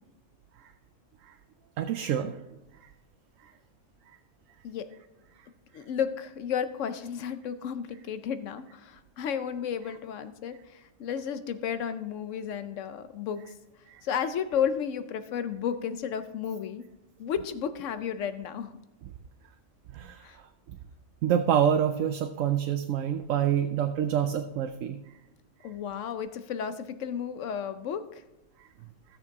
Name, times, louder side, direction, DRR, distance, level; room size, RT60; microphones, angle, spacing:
voice 1, 1.8-2.4 13.9-14.0 19.9-20.2 21.2-25.0, right 9 dB, 85° right, 7 dB, 1.0 m, -26 dB
voice 2, 5.7-13.5 14.0-16.9 17.2-18.8 20.2-20.4 25.6-28.2, left 8 dB, 75° left, 11 dB, 1.0 m, -33 dB
16.0 x 6.7 x 3.6 m, 0.97 s
omnidirectional pair, 1.3 m